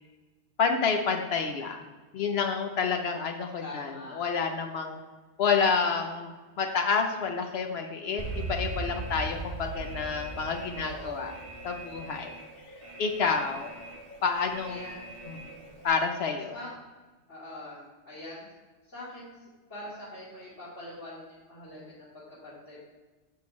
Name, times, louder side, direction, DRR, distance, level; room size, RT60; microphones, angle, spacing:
voice 1, 0.6-1.8 2.1-5.0 5.4-11.3 11.6-12.3 13.0-13.7 14.2-14.8 15.3-15.4 15.8-16.6, left 5 dB, 65° left, 4 dB, 0.9 m, -29 dB
voice 2, 3.6-4.2 10.7-11.4 14.7-15.1 16.5-16.7 17.3-18.4 18.9-19.3 19.7-22.8, left 1 dB, 85° left, -12 dB, 2.9 m, -43 dB
Alarm, 8.2-15.9, right 2 dB, 30° right, 1.1 m, -40 dB
6.9 x 6.7 x 3.1 m, 1.3 s
omnidirectional pair, 1.2 m